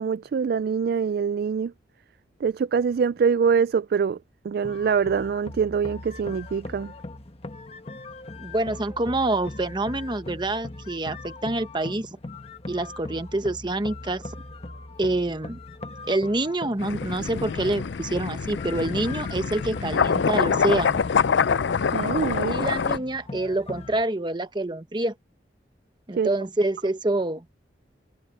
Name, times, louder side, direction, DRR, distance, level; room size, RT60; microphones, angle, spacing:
voice 1, 0.0-1.7 2.4-4.2 4.4-6.9 21.9-22.6 26.2-26.3, right 6 dB, 60° right, 0.3 m, -24 dB
sound 1, 4.6-24.0, left 2 dB, 35° left, 1.3 m, -40 dB
voice 2, 8.4-12.1 12.7-14.2 15.0-15.6 16.1-21.0 22.5-25.1 26.1-27.4, right 2 dB, 25° right, 1.0 m, -27 dB
sound 2, 16.8-23.0, left 6 dB, 85° left, 0.5 m, -25 dB
head